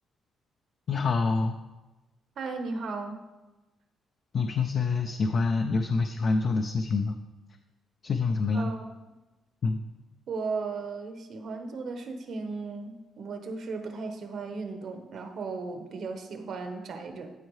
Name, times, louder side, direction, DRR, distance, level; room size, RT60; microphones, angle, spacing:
voice 1, 0.9-1.6 4.3-7.2 8.0-8.7 9.6-9.8, left 4 dB, 55° left, 5 dB, 0.5 m, -26 dB
voice 2, 2.4-3.2 8.5-8.9 10.3-17.3, right 4 dB, 65° right, 5 dB, 1.1 m, -36 dB
13.0 x 4.5 x 3.2 m, 1.1 s
cardioid pair, 90°, 0 cm